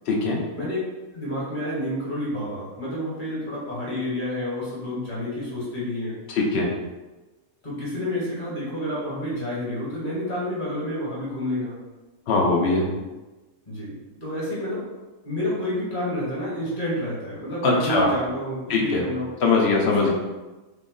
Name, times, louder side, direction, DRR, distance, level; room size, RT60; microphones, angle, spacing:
voice 1, 0.1-0.4 6.3-6.7 12.3-12.9 17.6-18.1 18.7-19.0 19.4-20.1, left 3 dB, 60° left, -1 dB, 0.7 m, -21 dB
voice 2, 1.1-6.2 7.6-11.8 13.7-14.8 15.2-19.3 19.9-20.1, equal, 35° left, -7 dB, 1.3 m, -29 dB
3.5 x 2.0 x 3.7 m, 1.1 s
omnidirectional pair, 1.5 m